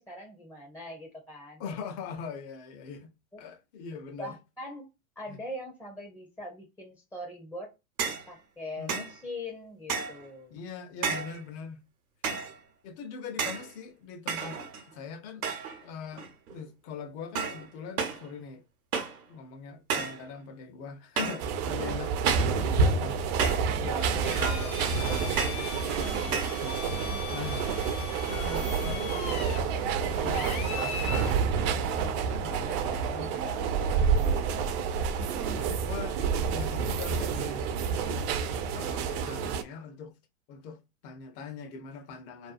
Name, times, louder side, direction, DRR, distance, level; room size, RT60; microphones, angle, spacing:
voice 1, 0.0-1.6 3.3-3.4 4.2-4.9 5.2-7.7 8.3-10.5 21.6-22.0 22.8-23.1 23.7-24.0 26.1-26.3 26.9-27.3 35.2-35.7, left 1 dB, 5° left, 0.5 m, -42 dB
voice 2, 1.6-3.1 3.4-4.4 5.3-5.4 8.8-9.1 10.5-11.8 12.8-15.5 15.8-18.6 19.3-22.2 22.5-28.0 28.3-29.5 30.1-34.6 35.6-36.2 36.5-38.3 38.7-40.1 40.5-42.5, left 5 dB, 50° left, 0.7 m, -42 dB
sound 1, 8.0-8.3 8.9-9.2 9.9-10.3 11.0-11.4 12.2-12.6 13.4-13.7 14.3-14.9 15.4-15.8 16.1-16.6 17.4-17.7 18.0-18.3 18.9-19.2 19.9-20.2 21.2-21.5 22.3-22.6 23.4-23.7 24.4-24.7 25.4-25.7 26.3-26.6, right 6 dB, 90° right, 0.8 m, -32 dB
sound 2, 21.4-39.6, right 6 dB, 45° right, 0.4 m, -29 dB
Drill, 24.2-31.4, left 6 dB, 80° left, 0.9 m, -39 dB
2.6 x 2.2 x 2.4 m
hypercardioid pair, 110°, 42 cm